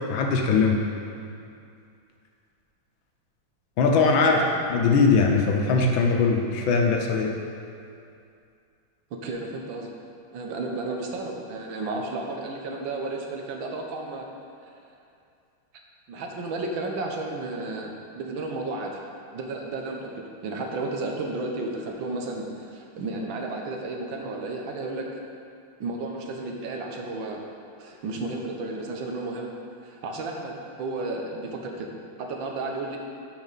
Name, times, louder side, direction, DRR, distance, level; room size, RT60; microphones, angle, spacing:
voice 1, 0.1-0.8 3.8-4.4 4.7-7.4, left 4 dB, 75° left, 1 dB, 1.6 m, -21 dB
voice 2, 4.1-4.5 9.1-9.9 10.3-14.3 14.7-14.8 16.1-19.0 19.3-25.1 25.8-27.4 27.8-29.5 29.8-31.9 32.2-33.0, right 2 dB, 75° right, 1 dB, 1.6 m, -33 dB
12.0 x 5.2 x 4.1 m, 2.5 s
omnidirectional pair, 2.2 m